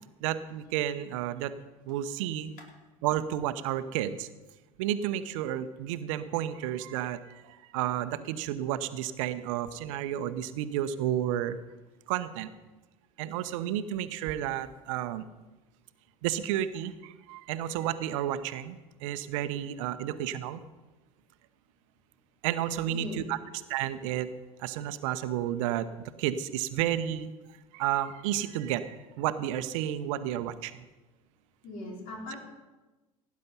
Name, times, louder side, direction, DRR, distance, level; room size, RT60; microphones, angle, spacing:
voice 1, 0.2-1.6 1.9-2.6 3.0-4.3 4.8-11.6 12.1-12.5 13.2-15.2 16.2-20.6 22.4-23.4 23.7-24.3 24.6-27.3 27.7-30.8, right 11 dB, 70° right, 12 dB, 0.9 m, -31 dB
voice 2, 22.9-23.5 31.6-32.4, left 1 dB, 55° left, -1 dB, 4.4 m, -39 dB
17.5 x 9.5 x 5.6 m, 1.2 s
hypercardioid pair, 75°, 17 cm